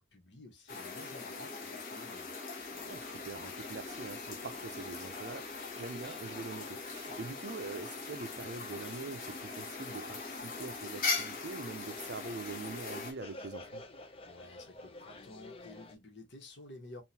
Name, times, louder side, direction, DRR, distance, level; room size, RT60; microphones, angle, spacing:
voice 1, 0.0-2.3 14.2-17.0, left 2 dB, 70° left, 1.3 m, -52 dB
sound 1, 0.7-13.1, left 4 dB, 45° left, 1.1 m, -40 dB
sound 2, 2.6-15.9, left 2 dB, 30° left, 0.4 m, -53 dB
voice 2, 2.9-5.5 5.8-13.8, right 4 dB, 65° right, 0.5 m, -44 dB
3.7 x 2.5 x 2.7 m
head